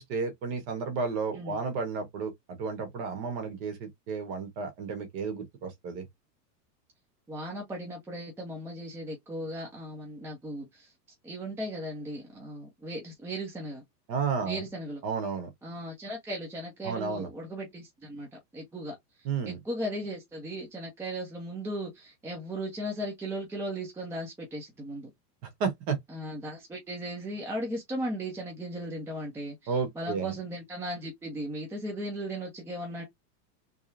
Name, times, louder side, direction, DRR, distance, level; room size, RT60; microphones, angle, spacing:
voice 1, 0.0-6.1 14.1-14.6 15.0-15.5 16.8-17.3 19.2-19.6 25.4-26.0 29.7-30.3, right 5 dB, 35° right, 1.6 m, -32 dB
voice 2, 7.3-10.9 11.2-13.8 14.4-15.0 15.6-19.0 19.5-25.1 26.1-33.0, right 1 dB, 5° right, 0.8 m, -37 dB
3.5 x 3.2 x 2.7 m
supercardioid pair, 160°, 49 cm